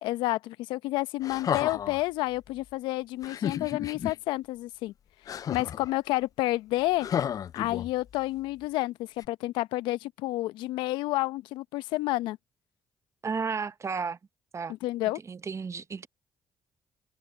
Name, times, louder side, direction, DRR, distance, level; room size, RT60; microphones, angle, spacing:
voice 1, 0.0-4.9 5.5-7.1 7.5-12.4 14.8-15.2, left 18 dB, 80° left, 0.9 m, -30 dB
sound 1, 1.2-2.0 3.2-4.2 5.3-5.9 7.0-8.2 9.2-9.3, left 9 dB, 45° left, 0.3 m, -32 dB
voice 2, 13.2-14.2 14.5-14.7 15.2-16.1, right 5 dB, 35° right, 0.9 m, -33 dB
hypercardioid pair, 55°, 8 cm